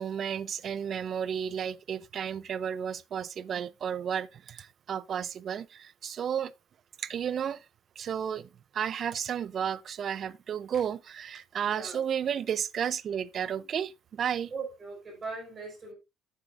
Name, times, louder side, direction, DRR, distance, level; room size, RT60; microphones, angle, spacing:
voice 1, 0.0-6.5 7.0-7.7 8.0-14.5, right 8 dB, 45° right, 0.5 m, -33 dB
voice 2, 11.6-12.0 14.5-15.9, right 4 dB, 25° right, 4.7 m, -39 dB
14.0 x 7.5 x 2.4 m
cardioid pair, 140°, 0 cm